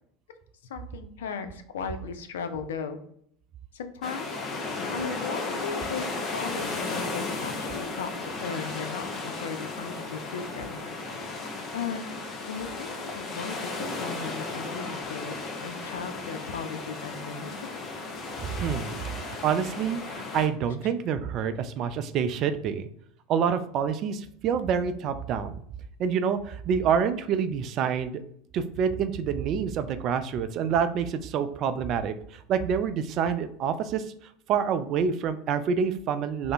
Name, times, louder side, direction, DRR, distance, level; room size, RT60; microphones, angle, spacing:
voice 1, 0.7-3.0 3.7-4.4 4.9-10.9 11.7-17.7 20.8-20.9, left 6 dB, 75° left, 9 dB, 0.4 m, -37 dB
sound 1, 4.0-20.5, left 3 dB, 35° left, 0.7 m, -35 dB
voice 2, 18.4-22.9 23.3-25.6 26.0-28.2 28.5-34.0 34.5-36.5, right 7 dB, 45° right, 10 dB, 0.3 m, -27 dB
3.3 x 2.0 x 3.7 m, 0.68 s
hypercardioid pair, 75°, 0 cm